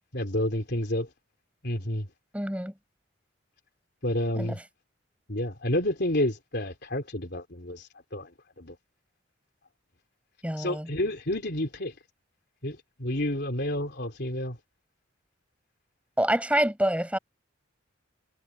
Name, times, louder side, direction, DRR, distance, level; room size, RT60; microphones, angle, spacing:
voice 1, 0.1-1.1 1.6-2.1 4.0-4.6 5.3-8.8 10.6-11.9 12.6-14.6, left 1 dB, 55° left, 3.8 m, -30 dB
voice 2, 2.3-2.7 4.4-4.6 10.4-10.9 16.2-17.2, right 1 dB, 5° right, 7.9 m, -26 dB
head